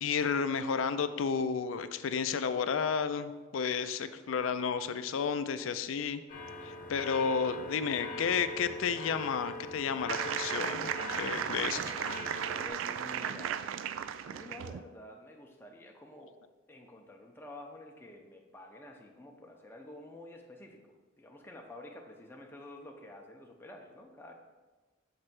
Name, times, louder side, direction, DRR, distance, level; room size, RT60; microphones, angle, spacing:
voice 1, 0.0-6.2 6.6-12.0, left 6 dB, 80° left, 11 dB, 0.4 m, -32 dB
sound 1, 6.3-12.7, left 2 dB, 45° left, 0.9 m, -42 dB
sound 2, 10.1-14.8, right 9 dB, 75° right, 0.3 m, -35 dB
voice 2, 12.5-13.6 14.2-16.4 16.7-20.8 21.2-24.3, left 1 dB, 10° left, 1 dB, 0.7 m, -49 dB
6.6 x 3.2 x 6.0 m, 1.3 s
head